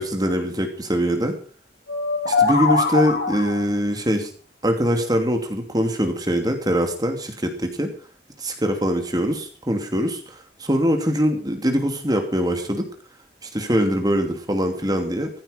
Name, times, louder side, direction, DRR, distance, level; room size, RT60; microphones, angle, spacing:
voice 1, 0.0-1.4 2.2-4.3 4.6-7.9 8.4-12.9 13.4-15.3, equal, 20° right, 5 dB, 2.6 m, -23 dB
sound 1, 1.9-3.7, left 4 dB, 65° left, 6.8 m, -22 dB
15.5 x 14.5 x 5.2 m, 0.38 s
head